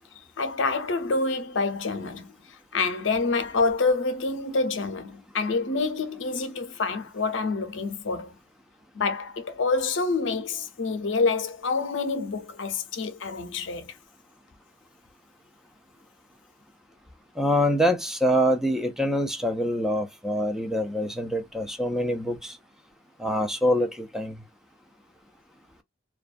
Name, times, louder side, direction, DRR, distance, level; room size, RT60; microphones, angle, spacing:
voice 1, 0.4-2.3 2.7-8.4 8.9-14.0, left 3 dB, 75° left, 0.6 m, -27 dB
voice 2, 17.4-22.6 23.2-24.4, equal, 5° right, 0.4 m, -25 dB
2.4 x 2.2 x 2.4 m
head